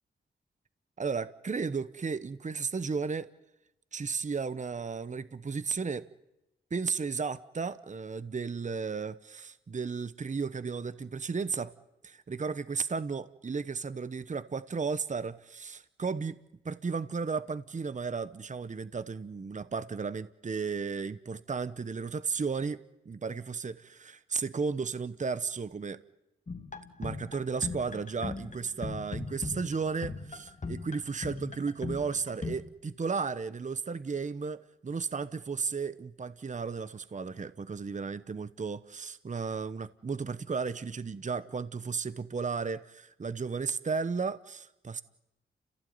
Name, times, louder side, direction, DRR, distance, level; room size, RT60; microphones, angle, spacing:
voice 1, 1.0-3.3 3.9-6.1 6.7-11.7 12.0-16.4 16.6-22.8 23.0-26.0 27.0-45.0, right 5 dB, 40° right, 14 dB, 1.0 m, -34 dB
sound 1, 26.5-32.6, left 3 dB, 40° left, 2.4 m, -39 dB
30.0 x 16.0 x 9.5 m, 0.95 s
cardioid pair, 75°, 20 cm